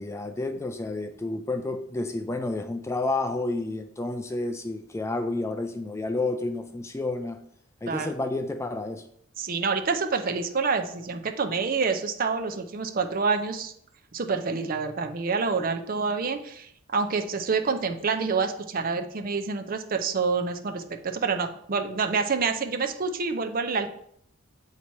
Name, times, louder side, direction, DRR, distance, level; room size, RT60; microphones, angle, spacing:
voice 1, 0.0-7.4 7.8-9.1, left 2 dB, 15° left, 7 dB, 0.3 m, -30 dB
voice 2, 9.4-13.7 14.1-23.9, right 4 dB, 45° right, 7 dB, 0.5 m, -27 dB
8.3 x 2.9 x 4.5 m, 0.70 s
head